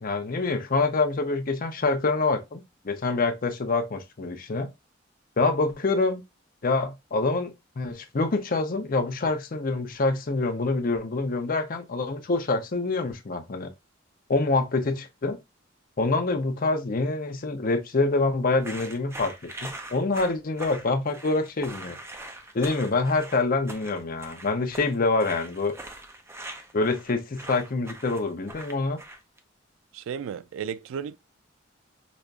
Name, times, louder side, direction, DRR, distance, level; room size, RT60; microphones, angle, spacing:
voice 1, 0.0-4.7 5.4-6.2 6.6-13.7 14.3-15.4 16.0-22.0 22.5-25.7 26.7-29.0, left 3 dB, 45° left, 0.6 m, -26 dB
sound 1, 18.6-29.4, right 1 dB, 15° right, 0.5 m, -42 dB
voice 2, 29.9-31.2, right 7 dB, 85° right, 0.3 m, -34 dB
5.0 x 2.4 x 2.3 m
head